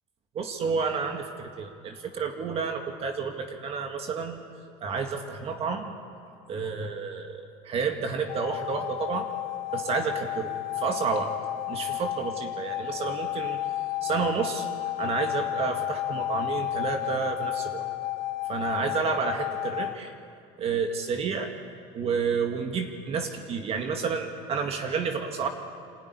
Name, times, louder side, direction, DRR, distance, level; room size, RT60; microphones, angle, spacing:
voice 1, 0.3-4.4 4.8-5.9 6.5-9.3 9.7-11.3 11.7-13.6 14.0-14.7 15.0-17.9 18.5-20.1 20.6-21.5 21.9-25.5, right 5 dB, 45° right, 4 dB, 2.0 m, -30 dB
sound 1, 8.3-20.0, left 15 dB, 75° left, 0.8 m, -32 dB
26.5 x 12.5 x 10.0 m, 2.4 s
cardioid pair, 115°, 14 cm